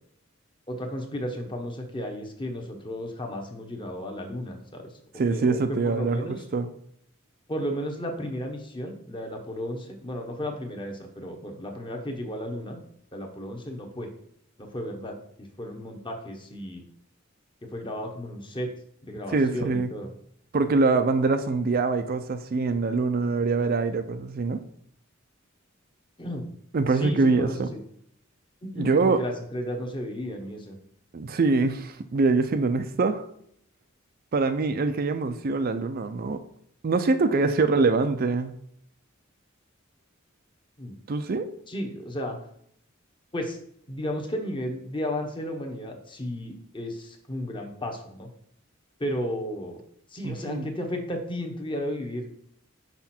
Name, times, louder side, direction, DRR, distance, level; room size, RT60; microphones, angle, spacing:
voice 1, 0.7-4.9 5.3-6.3 7.5-12.8 13.1-14.1 14.6-16.8 17.6-18.7 19.0-20.1 26.2-26.5 26.9-27.8 28.6-30.8 40.8-40.9 41.7-42.4 43.3-43.6 43.9-48.3 49.0-49.8 50.1-52.3, equal, 25° left, 3 dB, 1.0 m, -34 dB
voice 2, 5.2-6.2 6.5-6.7 19.3-19.9 20.5-24.6 26.7-27.7 28.8-29.2 31.1-33.3 34.3-36.4 36.8-38.5 41.1-41.5 50.2-50.7, right 3 dB, 45° right, 9 dB, 0.4 m, -24 dB
5.9 x 5.2 x 4.3 m, 0.68 s
head